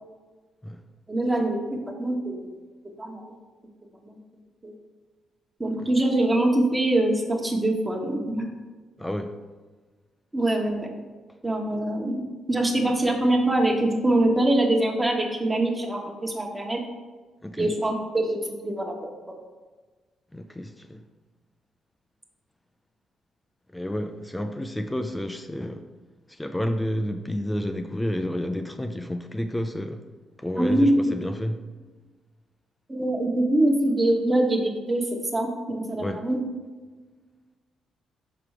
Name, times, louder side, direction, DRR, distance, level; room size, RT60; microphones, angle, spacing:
voice 1, 1.1-2.5 3.0-3.3 4.6-4.7 5.6-8.5 10.3-10.9 11.4-12.2 12.5-16.8 17.6-19.1 30.6-31.1 32.9-35.0 35.3-36.4, right 1 dB, 15° right, 1.2 m, -24 dB
voice 2, 9.0-9.3 17.4-17.7 20.3-21.0 23.7-25.8 26.3-30.0 30.4-31.6 36.0-36.3, equal, 10° left, 0.4 m, -30 dB
5.9 x 4.6 x 4.9 m
cardioid pair, 90°, 0 cm